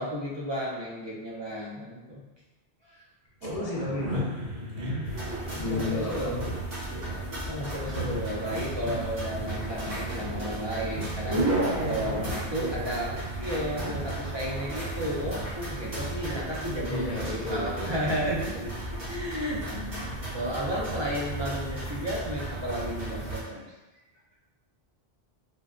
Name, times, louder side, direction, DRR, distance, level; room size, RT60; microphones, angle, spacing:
voice 1, 0.0-2.2 2.8-3.0 3.8-4.0 5.7-6.4 7.5-23.7, equal, 35° right, -5 dB, 0.5 m, -33 dB
voice 2, 3.4-4.3 5.6-6.4 16.8-17.9, left 2 dB, 45° left, -2 dB, 0.5 m, -32 dB
sound 1, 3.4-16.1, right 1 dB, 85° right, 1.2 m, -34 dB
sound 2, 5.0-23.4, right 2 dB, 65° right, 1.5 m, -36 dB
3.8 x 2.2 x 2.4 m, 1.1 s
omnidirectional pair, 1.1 m